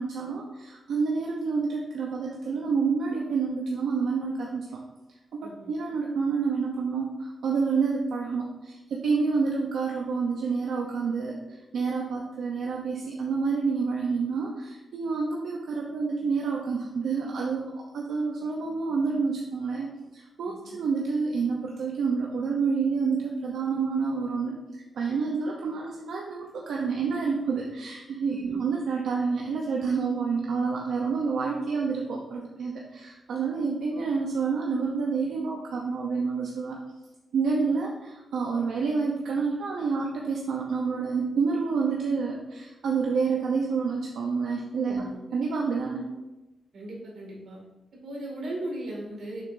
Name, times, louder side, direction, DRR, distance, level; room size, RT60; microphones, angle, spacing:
voice 1, 0.0-4.7 5.3-11.3 11.7-17.6 17.9-19.9 20.1-24.6 24.9-36.8 37.3-45.1 45.3-46.1, right 5 dB, 85° right, -1 dB, 0.7 m, -28 dB
voice 2, 5.4-5.7 20.4-20.8 28.3-28.6 44.8-45.2 46.7-47.6 48.0-49.5, right 1 dB, 65° right, -3 dB, 2.3 m, -37 dB
7.0 x 6.2 x 2.7 m, 1.0 s
wide cardioid pair, 145°, 0 cm